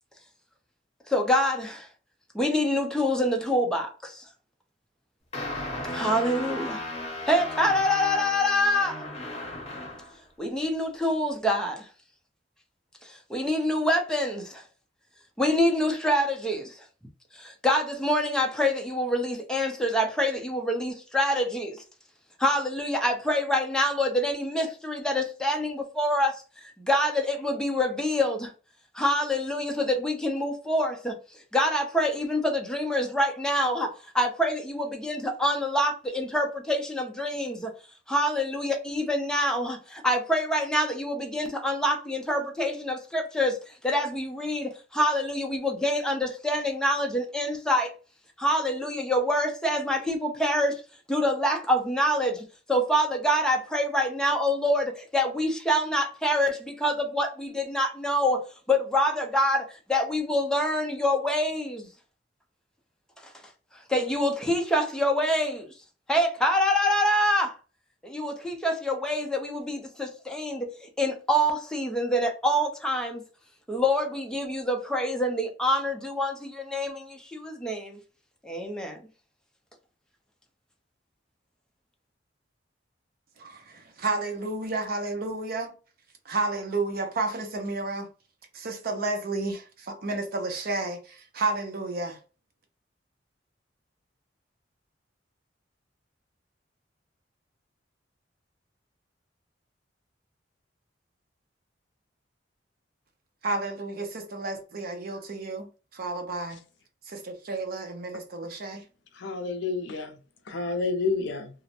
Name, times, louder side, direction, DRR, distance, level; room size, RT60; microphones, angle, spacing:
voice 1, 1.1-1.9 2.3-4.3 5.9-6.8 7.3-9.1 10.4-11.9 13.0-14.6 15.4-16.8 17.3-21.8 22.4-26.4 26.8-28.5 28.9-31.2 31.5-37.7 38.1-47.9 48.4-50.8 51.1-58.4 58.7-61.9 63.7-65.7 66.1-67.6 68.0-70.7 71.0-73.2 73.7-78.0 78.4-79.0, equal, 5° left, 0.5 m, -26 dB
sound 1, 5.3-10.2, left 1 dB, 35° left, 0.9 m, -35 dB
voice 2, 83.4-85.7 86.2-88.1 88.5-92.2 103.4-106.6 107.1-108.8, right 3 dB, 55° right, 0.6 m, -31 dB
voice 3, 109.2-110.2 110.5-111.5, left 4 dB, 70° left, 0.5 m, -29 dB
2.4 x 2.1 x 2.8 m
head